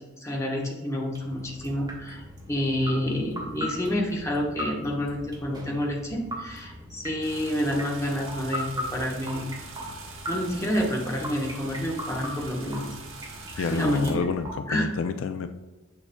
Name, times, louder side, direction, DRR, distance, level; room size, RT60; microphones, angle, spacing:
voice 1, 0.0-9.5 10.3-12.9 13.5-14.2 14.7-14.9, equal, 15° left, -1 dB, 1.1 m, -29 dB
sound 1, 1.1-14.6, equal, 20° right, 1.3 m, -39 dB
sound 2, 7.2-14.1, right 4 dB, 75° right, 1.2 m, -44 dB
voice 2, 13.6-15.5, left 5 dB, 70° left, 8 dB, 0.4 m, -28 dB
7.0 x 6.8 x 2.2 m, 1.2 s
head